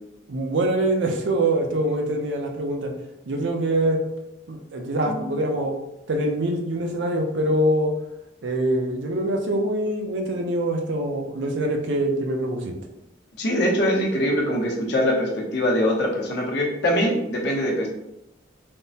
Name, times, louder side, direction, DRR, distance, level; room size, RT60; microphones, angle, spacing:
voice 1, 0.3-2.9 3.3-4.0 4.5-5.7 6.1-7.9 8.4-12.7, right 1 dB, 75° right, 3 dB, 0.5 m, -24 dB
voice 2, 5.1-5.4 13.4-17.9, equal, 60° left, -2 dB, 0.7 m, -23 dB
3.4 x 2.0 x 2.7 m, 0.86 s
head